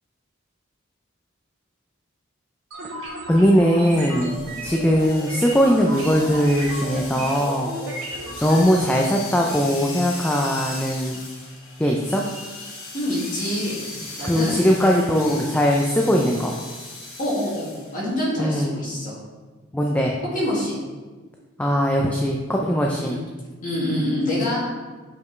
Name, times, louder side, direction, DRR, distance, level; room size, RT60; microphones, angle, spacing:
sound 1, 2.7-8.6, right 1 dB, 75° right, 1.6 m, -34 dB
voice 1, 3.3-4.4 4.6-7.7 8.4-11.2 11.8-12.2 14.2-16.6 18.4-18.8 19.7-20.1 21.6-23.2, equal, 5° left, -1 dB, 0.4 m, -20 dB
sound 2, 4.0-18.0, left 3 dB, 85° left, 2.0 m, -38 dB
voice 2, 12.9-13.8 14.2-14.6 17.2-19.2 20.3-20.8 23.0-23.2 23.6-24.6, left 1 dB, 40° left, -7 dB, 2.1 m, -26 dB
6.9 x 5.3 x 3.2 m, 1.3 s
head